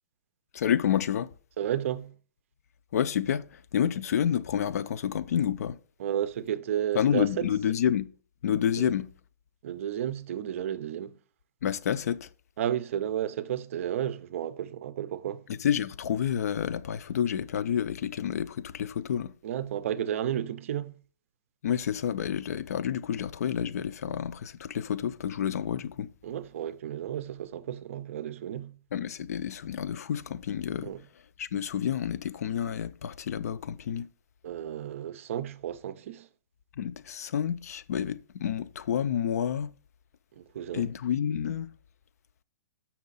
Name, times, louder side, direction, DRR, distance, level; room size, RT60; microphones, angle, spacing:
voice 1, 0.5-1.3 2.9-5.8 6.9-8.1 8.4-9.1 11.6-12.3 15.5-19.3 21.6-26.1 28.9-30.9 31.4-34.1 36.8-39.7 40.7-41.7, left 9 dB, 70° left, 0.5 m, -29 dB
voice 2, 1.6-2.1 6.0-7.5 8.7-8.9 9.6-11.2 12.6-15.4 19.4-20.9 26.2-28.8 30.8-31.0 34.4-36.3 40.4-40.9, right 10 dB, 50° right, 0.6 m, -32 dB
7.3 x 5.8 x 4.0 m
hypercardioid pair, 165°, 9 cm